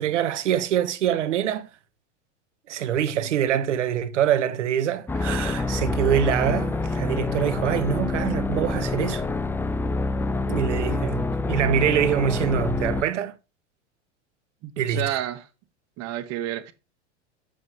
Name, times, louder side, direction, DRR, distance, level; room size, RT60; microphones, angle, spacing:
voice 1, 0.0-1.7 2.7-9.2 10.5-13.3 14.8-15.0, right 9 dB, 80° right, 1.3 m, -24 dB
voice 2, 3.1-3.6 10.7-11.0 14.6-15.5 16.0-16.7, right 13 dB, 45° right, 1.5 m, -31 dB
sound 1, 5.1-13.0, left 3 dB, 5° left, 0.4 m, -26 dB
7.9 x 7.6 x 3.0 m
hypercardioid pair, 100°, 35 cm